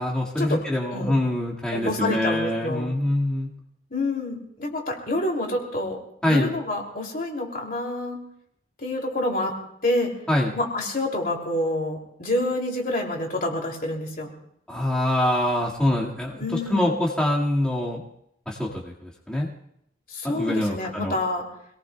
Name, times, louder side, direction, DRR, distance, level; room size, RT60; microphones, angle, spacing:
voice 1, 0.0-3.5 6.2-6.5 10.3-10.5 14.7-18.0 18.5-19.5 20.2-21.2, left 1 dB, 5° left, -5 dB, 1.8 m, -25 dB
voice 2, 1.7-3.0 3.9-6.0 6.2-8.2 8.8-9.6 9.8-10.1 10.5-14.3 16.4-16.9 20.1-21.5, left 1 dB, 50° left, 0 dB, 2.7 m, -27 dB
25.5 x 18.5 x 2.3 m, 0.73 s
head